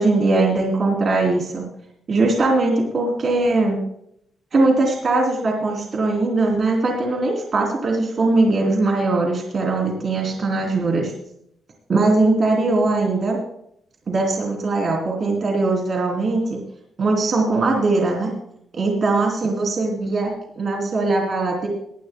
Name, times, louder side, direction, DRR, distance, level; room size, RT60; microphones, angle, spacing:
voice 1, 0.0-1.6 2.1-3.8 4.5-11.1 11.9-13.4 14.1-16.6 17.0-18.3 18.8-21.7, right 3 dB, 40° right, 0 dB, 3.3 m, -20 dB
20.5 x 11.5 x 2.3 m, 0.71 s
cardioid pair, 155°, 0 cm